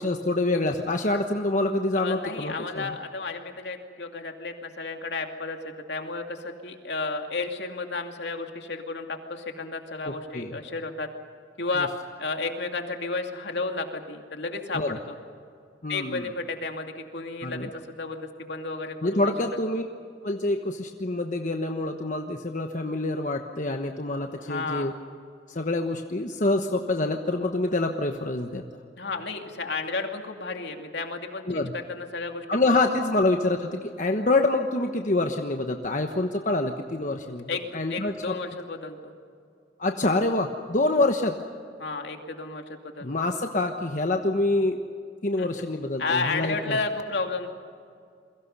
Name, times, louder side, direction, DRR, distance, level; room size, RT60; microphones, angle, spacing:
voice 1, 0.0-2.9 10.0-10.6 14.7-15.0 15.8-16.2 17.4-17.7 19.0-19.8 20.2-24.9 25.5-28.6 31.5-31.7 32.5-38.3 39.8-41.3 43.0-44.8 45.2-46.8, left 2 dB, 45° left, 4 dB, 1.2 m, -26 dB
voice 2, 1.9-11.1 11.6-11.9 12.2-15.2 15.9-19.3 24.4-24.9 29.0-32.7 37.5-39.1 41.8-43.1 45.4-45.6 46.0-47.5, left 3 dB, 75° left, 4 dB, 2.5 m, -32 dB
28.5 x 23.0 x 5.6 m, 2.3 s
head